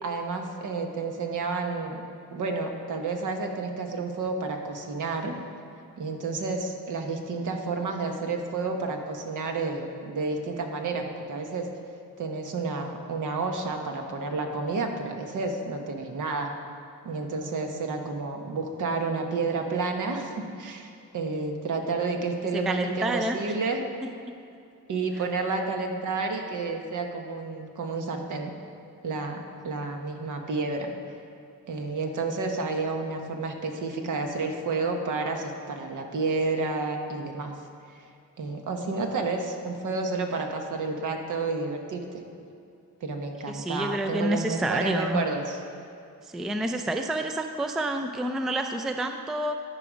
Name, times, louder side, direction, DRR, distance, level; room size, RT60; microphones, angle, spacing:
voice 1, 0.0-2.0 2.3-5.3 6.0-11.7 12.2-16.5 17.0-23.8 24.9-28.5 29.0-30.9 31.7-37.5 37.9-38.0 38.4-42.2 43.0-45.6, right 3 dB, 60° right, 3 dB, 1.2 m, -30 dB
voice 2, 22.7-23.4 43.5-45.2 46.3-49.5, right 1 dB, ahead, 5 dB, 0.4 m, -28 dB
13.0 x 4.9 x 5.1 m, 2.6 s
cardioid pair, 85°, 35 cm